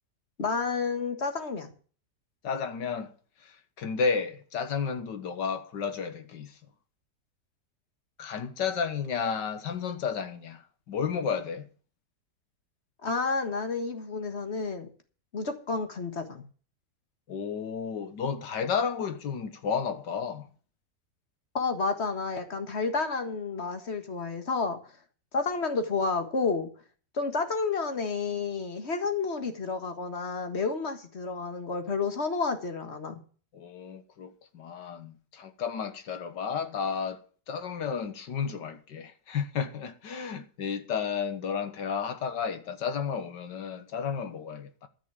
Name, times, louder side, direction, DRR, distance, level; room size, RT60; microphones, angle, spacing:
voice 1, 0.4-1.7 13.0-14.9 15.3-16.4 21.5-24.8 25.3-26.7 27.1-33.2, left 4 dB, 40° left, 1.8 m, -30 dB
voice 2, 2.4-3.1 3.4-6.6 8.2-11.7 17.3-20.5 33.5-44.9, left 6 dB, 85° left, 2.0 m, -32 dB
13.5 x 6.2 x 8.4 m
omnidirectional pair, 1.8 m